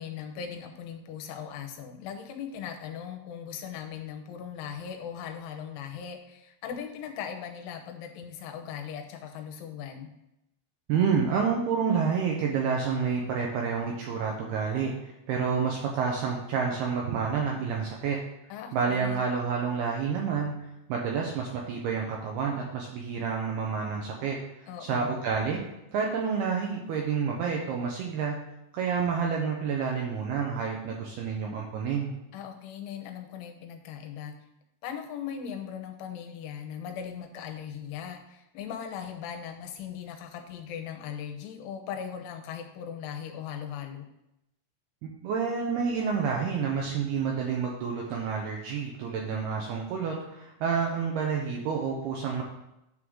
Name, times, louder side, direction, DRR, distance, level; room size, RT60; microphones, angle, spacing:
voice 1, 0.0-10.1 18.5-19.2 24.7-25.2 32.3-34.3 34.8-44.1, left 8 dB, 90° left, 4 dB, 3.3 m, -39 dB
voice 2, 10.9-14.9 15.3-18.2 18.7-20.5 20.9-24.4 24.8-25.6 25.9-28.4 28.7-32.1 45.0-52.4, right 6 dB, 80° right, 0 dB, 2.3 m, -29 dB
9.6 x 3.8 x 6.2 m, 0.87 s
omnidirectional pair, 5.5 m